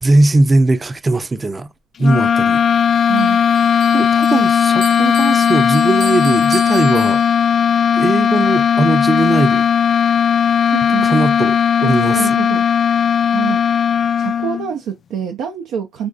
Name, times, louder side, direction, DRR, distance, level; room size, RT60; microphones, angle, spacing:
voice 1, 0.0-1.7 2.0-2.6 3.9-7.2 8.0-9.7 11.0-12.4, right 2 dB, 25° right, 0.5 m, -18 dB
sound 1, 2.0-14.7, left 7 dB, 55° left, 0.4 m, -16 dB
voice 2, 3.0-3.4 10.7-11.3 11.8-12.6 13.3-13.9 14.2-16.1, right 8 dB, 85° right, 0.6 m, -26 dB
Bell, 3.2-7.7, right 6 dB, 65° right, 1.0 m, -35 dB
5.1 x 2.3 x 2.4 m
cardioid pair, 90°, 0 cm